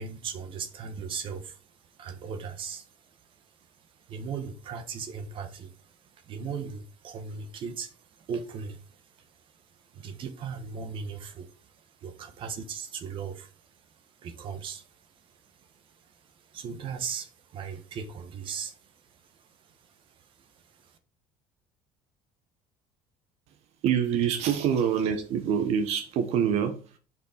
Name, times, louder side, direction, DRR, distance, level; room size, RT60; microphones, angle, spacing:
voice 1, 0.0-21.0, right 6 dB, 45° right, 1.5 m, -39 dB
voice 2, 23.8-27.0, right 8 dB, 65° right, 1.3 m, -26 dB
6.7 x 5.4 x 5.2 m
cardioid pair, 135°, 12 cm